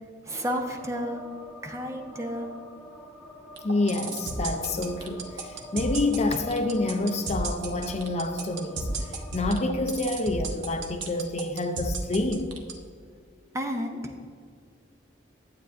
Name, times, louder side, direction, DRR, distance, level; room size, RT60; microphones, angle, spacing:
voice 1, 0.2-1.2 1.6-2.5 13.5-14.0, equal, 15° right, 0.7 m, -31 dB
sound 1, 0.8-9.7, left 1 dB, 5° left, 1.5 m, -47 dB
voice 2, 3.6-12.6, left 2 dB, 35° left, 0.5 m, -28 dB
sound 2, 3.6-12.7, right 3 dB, 70° right, 0.9 m, -33 dB
11.5 x 8.2 x 2.5 m
head